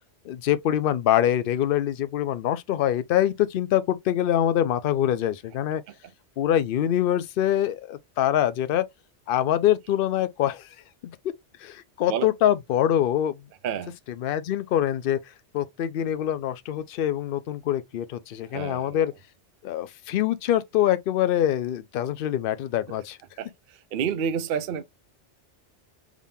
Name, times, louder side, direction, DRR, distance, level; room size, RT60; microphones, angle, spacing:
voice 1, 0.3-5.8 6.4-8.8 9.3-10.7 11.0-11.1 11.6-13.4 14.2-15.2 15.5-19.1 19.6-23.2, left 11 dB, 60° left, 0.7 m, -24 dB
voice 2, 13.6-13.9 18.4-19.0 22.9-23.0 23.4-24.8, right 7 dB, 60° right, 0.6 m, -30 dB
3.7 x 3.5 x 2.7 m
omnidirectional pair, 1.2 m